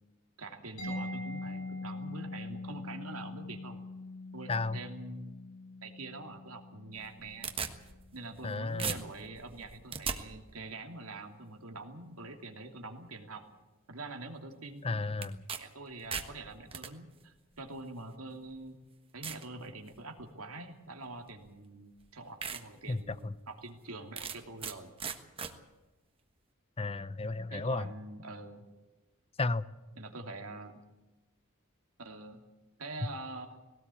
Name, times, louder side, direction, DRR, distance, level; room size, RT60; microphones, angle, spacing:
voice 1, 0.4-3.8 4.3-5.4 5.8-7.5 8.1-13.4 13.9-15.1 15.6-18.8 19.1-24.9 27.5-28.6 29.9-30.7 32.0-32.4 32.8-33.6, right 2 dB, 90° right, 4 dB, 2.8 m, -45 dB
Mallet percussion, 0.8-8.3, left 2 dB, 70° left, 7.1 m, -43 dB
voice 2, 4.5-4.8 8.4-8.9 14.8-15.4 22.9-23.3 26.8-27.8 29.4-29.6, left 3 dB, 25° left, 16 dB, 0.6 m, -33 dB
sound 1, 7.0-8.5 8.8-10.2 15.2-15.6 15.9-16.9 17.8-17.9 18.5-18.6 19.2-19.5 20.0-20.3 21.5-21.6 22.0-22.1 22.4-22.6 23.0-23.1 24.2-24.7 25.0-25.5, right 6 dB, 25° right, 1.4 m, -38 dB
20.0 x 17.5 x 8.5 m, 1.2 s
head